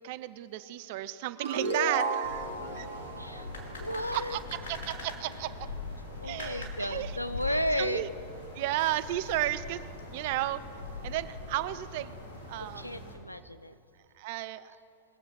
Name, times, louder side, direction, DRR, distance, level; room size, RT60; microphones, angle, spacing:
voice 1, 0.0-2.9 4.1-5.7 6.2-7.2 7.5-8.1 8.5-12.1 12.5-13.2 14.1-14.8, right 15 dB, 50° right, 13 dB, 0.5 m, -34 dB
sound 1, 1.4-4.6, right 3 dB, 70° right, 1.3 m, -34 dB
sound 2, 2.2-13.1, left 3 dB, 60° left, 2.5 m, -42 dB
voice 2, 3.2-4.4 6.2-8.0 12.8-13.8, equal, 90° left, 11 dB, 0.6 m, -33 dB
21.5 x 7.3 x 5.7 m, 2.5 s
figure-of-eight pair, 90°, 0 cm